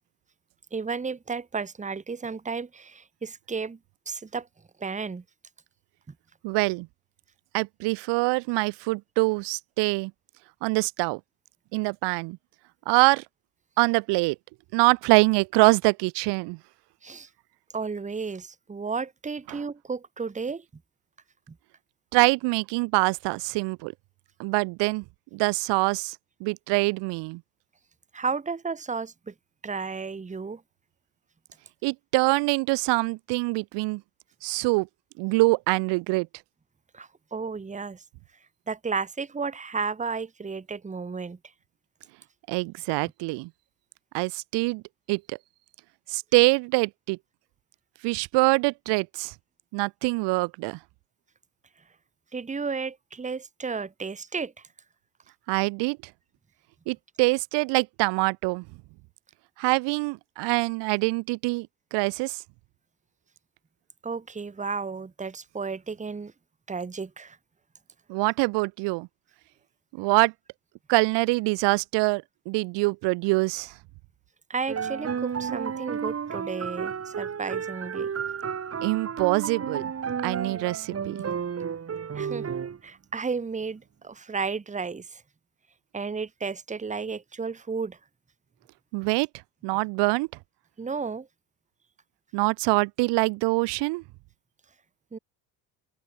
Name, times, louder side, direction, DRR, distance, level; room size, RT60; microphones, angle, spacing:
voice 1, 0.7-3.8 4.1-4.5 4.8-5.2 17.0-17.3 17.7-20.6 21.5-21.6 28.1-29.3 29.6-30.6 36.9-38.0 38.7-41.4 52.3-54.7 64.0-66.3 66.7-67.4 74.5-78.1 82.1-82.5 82.8-85.2 85.9-88.0 90.8-91.3 95.1-95.2, right 5 dB, 20° right, 1.4 m, -33 dB
voice 2, 6.4-6.9 7.5-10.1 10.6-11.2 11.7-12.4 12.9-13.2 13.8-14.4 14.7-16.6 19.5-19.6 22.1-23.9 24.4-25.0 25.3-27.4 31.8-34.0 34.4-34.9 35.2-36.3 42.5-43.5 44.1-44.8 45.1-45.4 46.1-47.2 48.0-49.3 49.7-50.8 55.5-56.0 56.9-58.7 59.6-62.4 68.1-69.1 69.9-70.3 70.9-73.7 78.8-79.9 80.2-81.2 88.9-89.3 89.6-90.3 92.3-94.0, right 26 dB, 80° right, 1.8 m, -24 dB
sound 1, 74.7-82.8, right 7 dB, 35° right, 3.6 m, -32 dB
open air
supercardioid pair, 90°, 41 cm